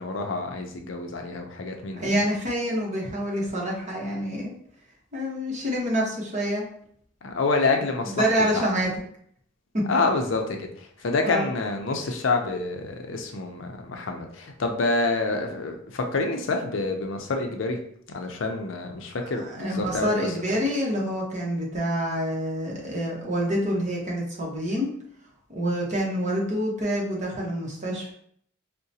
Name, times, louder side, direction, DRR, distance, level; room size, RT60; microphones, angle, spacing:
voice 1, 0.0-2.2 7.2-8.6 9.9-17.8 18.1-20.3, left 3 dB, 70° left, 4 dB, 0.5 m, -27 dB
voice 2, 2.0-4.5 5.1-6.6 8.1-8.9 9.7-10.0 11.2-11.5 19.4-24.9 25.5-28.1, equal, 35° right, -3 dB, 1.0 m, -27 dB
4.7 x 2.1 x 2.7 m, 0.63 s
head